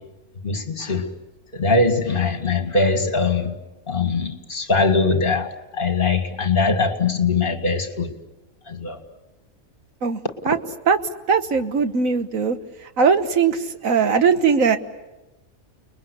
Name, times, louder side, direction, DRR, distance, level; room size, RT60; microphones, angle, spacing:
voice 1, 0.4-1.0 1.5-3.6 3.9-8.1 8.7-9.0, left 3 dB, 40° left, 2.3 m, -21 dB
voice 2, 10.0-10.6 10.9-11.0 11.3-12.6 12.8-14.8, right 6 dB, 75° right, 1.7 m, -20 dB
30.0 x 21.5 x 8.3 m
omnidirectional pair, 1.4 m